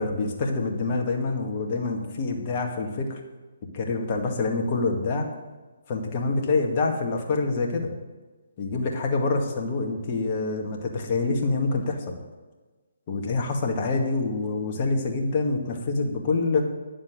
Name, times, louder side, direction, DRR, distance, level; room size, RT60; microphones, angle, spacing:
voice 1, 0.0-3.2 3.7-5.3 5.9-7.9 8.6-12.1 13.1-16.6, left 3 dB, 40° left, 2 dB, 2.1 m, -26 dB
10.0 x 7.5 x 7.6 m, 1.3 s
figure-of-eight pair, 140°, 0 cm